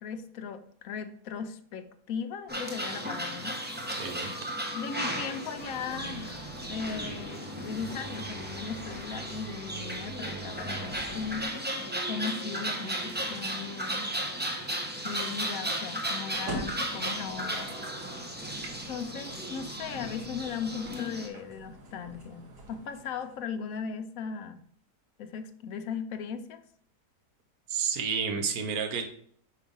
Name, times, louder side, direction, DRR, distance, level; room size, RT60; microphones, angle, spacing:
voice 1, 0.0-3.6 4.7-11.6 12.1-14.1 15.0-17.8 18.8-24.6 25.2-26.6, left 6 dB, 65° left, 8 dB, 1.0 m, -38 dB
sound 1, 2.5-21.3, right 1 dB, 10° right, 0.5 m, -35 dB
voice 2, 4.0-4.3 27.7-29.1, right 6 dB, 70° right, 6 dB, 1.4 m, -30 dB
sound 2, 5.5-11.5, right 3 dB, 45° right, 2.5 m, -45 dB
sound 3, 16.2-23.4, right 1 dB, 90° right, 1.9 m, -44 dB
5.4 x 4.9 x 5.3 m, 0.63 s
omnidirectional pair, 1.7 m